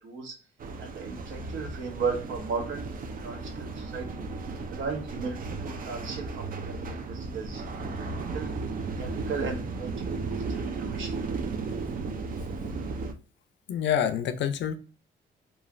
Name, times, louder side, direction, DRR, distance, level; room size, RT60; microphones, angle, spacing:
voice 1, 0.0-0.3 0.8-2.9 3.2-4.3 4.7-8.1 8.3-8.5 9.0-11.2, right 5 dB, 75° right, 0.9 m, -36 dB
sound 1, 0.6-13.1, right 3 dB, 45° right, 0.5 m, -35 dB
voice 2, 13.7-14.8, left 9 dB, 65° left, 0.4 m, -27 dB
3.0 x 2.3 x 2.5 m
cardioid pair, 90°, 20 cm